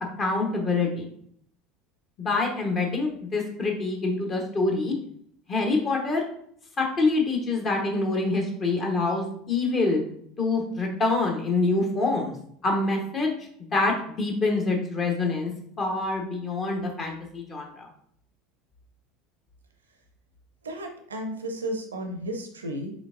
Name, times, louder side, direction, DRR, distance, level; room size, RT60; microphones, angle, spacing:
voice 1, 0.2-1.1 2.2-4.9 5.5-6.3 6.8-10.0 10.4-12.3 12.6-13.3 13.7-15.5 15.8-17.9, left 3 dB, 35° left, 1 dB, 1.1 m, -26 dB
voice 2, 20.6-22.9, right 1 dB, 75° right, 5 dB, 0.6 m, -33 dB
5.1 x 3.4 x 2.5 m, 0.65 s
figure-of-eight pair, 70°, 0 cm